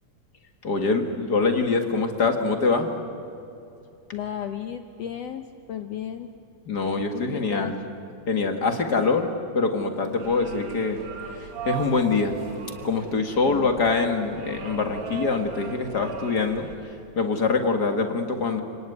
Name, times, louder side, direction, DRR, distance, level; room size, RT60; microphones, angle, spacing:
voice 1, 0.6-2.9 6.7-7.8 8.3-9.3 9.5-11.0 11.6-12.4 12.8-16.7 17.2-18.6, left 4 dB, 40° left, 5 dB, 1.7 m, -24 dB
voice 2, 4.1-6.3 7.1-7.8 8.9-9.2 13.4-13.7, left 9 dB, 70° left, 7 dB, 1.5 m, -34 dB
sound 1, 10.2-16.8, right 7 dB, 55° right, 2.8 m, -38 dB
29.0 x 19.0 x 9.4 m, 2.8 s
omnidirectional pair, 4.0 m